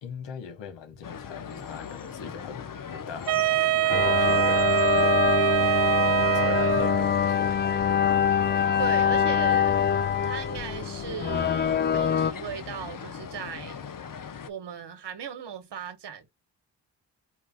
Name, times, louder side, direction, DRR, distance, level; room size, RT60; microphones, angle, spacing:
voice 1, 0.0-5.6 6.3-7.6, left 5 dB, 80° left, 1.5 m, -40 dB
sound 1, 1.0-14.5, left 7 dB, 50° left, 1.0 m, -40 dB
Wind instrument woodwind instrument, 3.3-7.1, right 16 dB, 50° right, 0.5 m, -24 dB
sound 2, 3.9-12.3, left 8 dB, 25° left, 0.3 m, -24 dB
voice 2, 8.8-9.8 10.2-13.8 14.5-16.3, right 8 dB, 70° right, 1.5 m, -37 dB
4.7 x 2.4 x 3.6 m
supercardioid pair, 45°, 43 cm